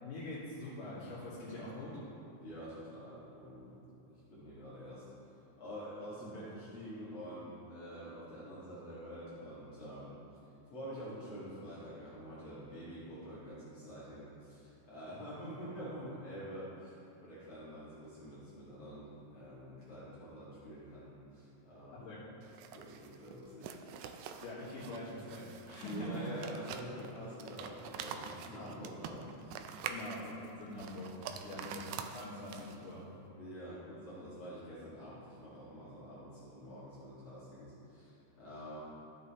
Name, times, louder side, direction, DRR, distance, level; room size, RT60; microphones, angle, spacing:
voice 1, 0.0-1.9 21.9-22.2 24.4-26.2 29.9-31.8 32.1-33.1, left 1 dB, 80° left, -12 dB, 3.4 m, -44 dB
voice 2, 2.4-3.8 4.1-5.0 5.6-10.1 10.7-22.1 22.7-23.7 25.8-29.6 31.5-31.7 33.4-38.8, equal, 55° left, -10 dB, 2.6 m, -47 dB
sound 1, 22.4-32.9, right 7 dB, 80° right, 1.8 m, -46 dB
13.5 x 7.6 x 2.9 m, 2.8 s
omnidirectional pair, 3.6 m